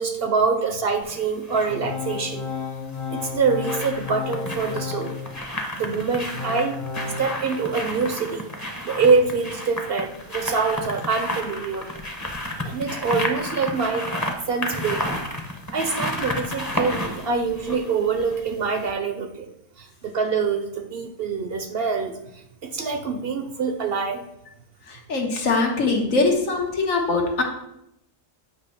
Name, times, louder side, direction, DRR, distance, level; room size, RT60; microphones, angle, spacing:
voice 1, 0.0-2.5 3.1-5.1 5.8-6.7 7.2-8.5 8.8-11.9 12.6-14.1 14.5-15.2 15.7-19.5 19.8-22.1 22.6-24.2, right 5 dB, 60° right, 7 dB, 0.7 m, -25 dB
sound 1, 1.0-1.8 3.0-18.5 18.8-18.9, left 1 dB, 15° left, 0.8 m, -31 dB
Organ, 1.7-5.5 5.9-7.2, left 6 dB, 45° left, 0.7 m, -33 dB
voice 2, 24.9-27.4, left 3 dB, 80° left, 2 dB, 1.6 m, -22 dB
8.7 x 3.1 x 5.7 m, 0.81 s
omnidirectional pair, 1.4 m